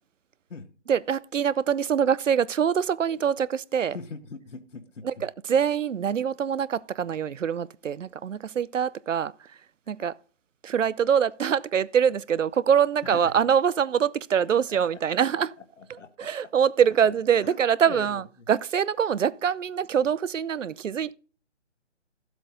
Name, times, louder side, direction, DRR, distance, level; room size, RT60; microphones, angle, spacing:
voice 1, 0.9-4.0 5.0-9.3 9.9-10.1 10.6-15.5 15.9-18.2 18.5-21.1, right 8 dB, 85° right, 0.6 m, -24 dB
voice 2, 3.9-5.3 13.0-13.3 14.7-14.8 15.1-15.2 15.8-16.3 17.4-17.6 17.9-18.5, left 4 dB, 80° left, 1.5 m, -41 dB
12.5 x 7.9 x 3.9 m
figure-of-eight pair, 155°, 37 cm